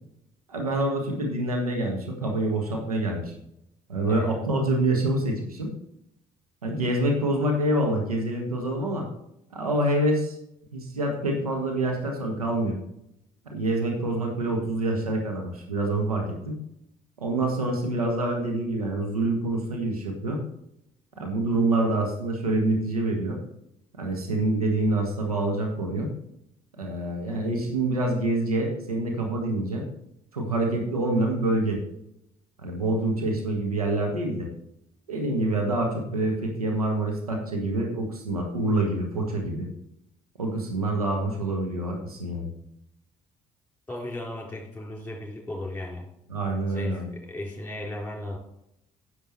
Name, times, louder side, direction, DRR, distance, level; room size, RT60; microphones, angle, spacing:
voice 1, 0.5-3.3 3.9-5.7 6.6-9.1 9.5-10.3 10.7-12.8 13.4-16.6 17.2-20.4 21.2-23.4 23.9-26.1 26.8-29.9 30.3-31.8 32.6-34.5 35.1-39.7 40.4-42.5 46.3-47.1, right 2 dB, 85° right, 2 dB, 1.4 m, -26 dB
voice 2, 4.1-4.4 43.9-46.1 46.7-48.4, left 1 dB, 10° left, 0 dB, 4.0 m, -35 dB
10.0 x 6.7 x 4.4 m, 0.79 s
figure-of-eight pair, 50°, 18 cm